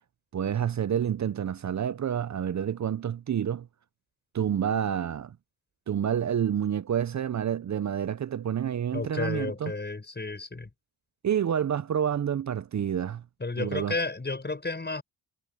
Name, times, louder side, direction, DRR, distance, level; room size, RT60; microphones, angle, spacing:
voice 1, 0.3-3.7 4.3-5.4 5.9-9.7 11.2-13.2 13.6-13.9, right 9 dB, 45° right, 0.9 m, -28 dB
voice 2, 8.9-10.7 13.4-15.0, left 3 dB, 25° left, 6.4 m, -32 dB
supercardioid pair, 50°, 40 cm